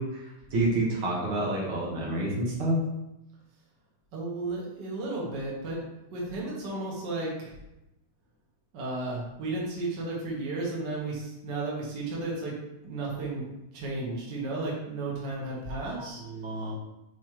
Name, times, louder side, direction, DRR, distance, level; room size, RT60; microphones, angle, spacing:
voice 1, 0.0-2.8 15.8-16.7, right 1 dB, 55° right, -4 dB, 1.5 m, -29 dB
voice 2, 4.1-5.8 6.1-7.5 8.7-12.5 12.8-13.5 13.7-16.2, right 2 dB, 85° right, -4 dB, 0.9 m, -33 dB
8.2 x 4.5 x 3.1 m, 0.91 s
omnidirectional pair, 4.2 m